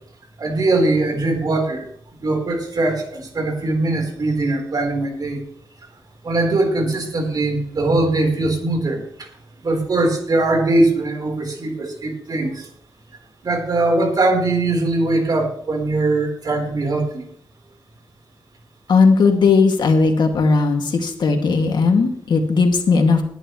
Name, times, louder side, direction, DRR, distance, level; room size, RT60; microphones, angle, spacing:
voice 1, 0.4-1.9 2.2-5.4 6.2-9.3 9.6-12.7 13.4-17.3, right 2 dB, 55° right, 2 dB, 4.1 m, -21 dB
voice 2, 18.9-23.2, left 4 dB, 75° left, 3 dB, 2.3 m, -16 dB
20.5 x 11.0 x 3.2 m, 0.64 s
cardioid pair, 70°, 8 cm